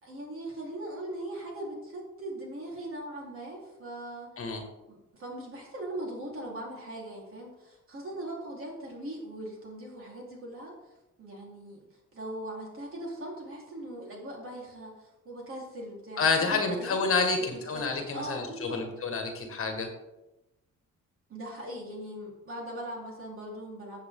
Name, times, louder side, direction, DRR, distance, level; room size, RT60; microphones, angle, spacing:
voice 1, 0.0-4.3 4.9-18.8 21.3-24.0, right 1 dB, 45° right, -2 dB, 4.0 m, -40 dB
voice 2, 16.2-19.9, left 4 dB, 45° left, 4 dB, 1.9 m, -29 dB
14.5 x 7.9 x 3.8 m, 0.98 s
cardioid pair, 145°, 31 cm